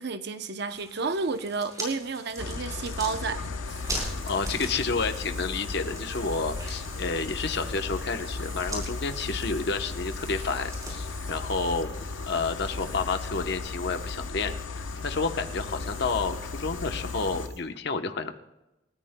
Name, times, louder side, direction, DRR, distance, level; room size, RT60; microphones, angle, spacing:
voice 1, 0.0-3.5, right 4 dB, 60° right, 0.8 m, -31 dB
sound 1, 0.7-11.0, right 1 dB, 20° right, 4.7 m, -41 dB
sound 2, 2.4-17.5, left 4 dB, 90° left, 0.8 m, -36 dB
sound 3, 3.7-17.6, right 4 dB, 80° right, 6.3 m, -49 dB
voice 2, 4.0-11.9 12.3-18.4, left 4 dB, 65° left, 1.0 m, -30 dB
28.5 x 14.0 x 2.3 m
head